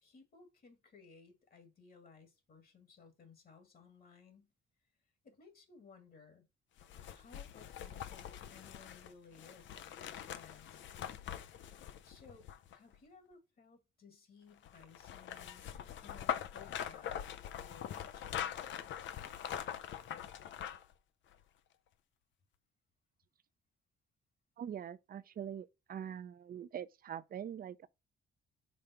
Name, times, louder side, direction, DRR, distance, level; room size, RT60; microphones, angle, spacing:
voice 1, 0.0-4.5 5.2-6.4 7.1-10.8 12.0-18.6, left 5 dB, 50° left, 1.9 m, -60 dB
sound 1, 6.8-13.0 14.6-20.9 21.3-21.4, left 10 dB, 70° left, 0.6 m, -43 dB
voice 2, 24.6-27.9, right 9 dB, 50° right, 0.5 m, -43 dB
5.3 x 3.3 x 5.5 m
cardioid pair, 90°, 20 cm